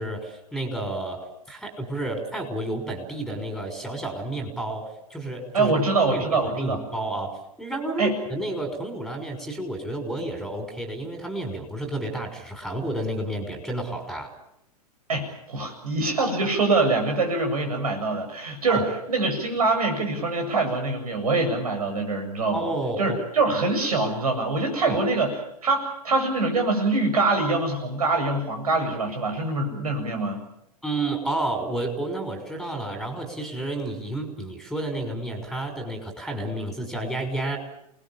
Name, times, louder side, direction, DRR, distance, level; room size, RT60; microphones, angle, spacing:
voice 1, 0.0-5.7 6.1-14.3 18.7-18.8 22.5-23.2 24.8-25.0 30.8-37.6, right 2 dB, ahead, 5 dB, 6.0 m, -31 dB
voice 2, 5.5-6.8 8.0-8.1 15.1-22.7 23.0-25.3 25.6-30.4, right 3 dB, 65° right, 5 dB, 7.8 m, -24 dB
29.0 x 20.5 x 7.4 m, 0.81 s
figure-of-eight pair, 100°, 20 cm